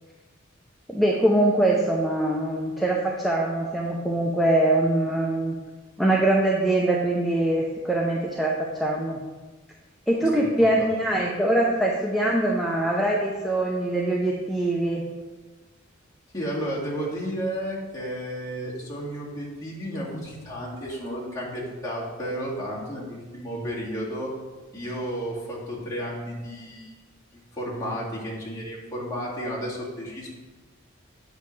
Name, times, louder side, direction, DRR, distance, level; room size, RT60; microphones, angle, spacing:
voice 1, 0.9-5.6 6.0-9.2 10.1-15.0, right 1 dB, ahead, -3 dB, 0.6 m, -23 dB
voice 2, 10.2-10.9 16.3-24.3 24.7-26.9 27.3-30.3, equal, 20° left, -7 dB, 2.0 m, -32 dB
8.7 x 5.6 x 3.2 m, 1.3 s
head